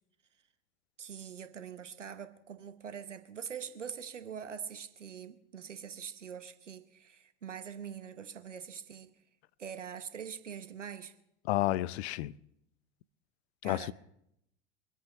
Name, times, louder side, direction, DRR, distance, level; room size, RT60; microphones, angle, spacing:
voice 1, 1.0-9.1 9.6-11.1 13.6-13.9, right 7 dB, 85° right, 1.1 m, -44 dB
voice 2, 11.5-12.3 13.6-13.9, left 16 dB, 65° left, 0.6 m, -30 dB
23.5 x 8.5 x 5.9 m
figure-of-eight pair, 75°, 35 cm